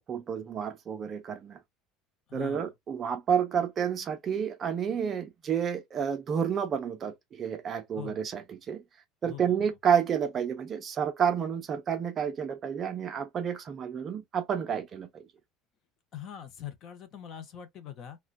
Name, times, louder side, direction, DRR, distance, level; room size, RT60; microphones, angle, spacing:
voice 1, 0.0-1.6 2.3-8.8 9.2-15.2, right 7 dB, 25° right, 0.5 m, -30 dB
voice 2, 2.3-2.7 7.9-8.2 9.2-9.8 16.1-18.2, left 10 dB, 35° left, 0.6 m, -43 dB
3.8 x 2.1 x 2.3 m
cardioid pair, 170°, 0 cm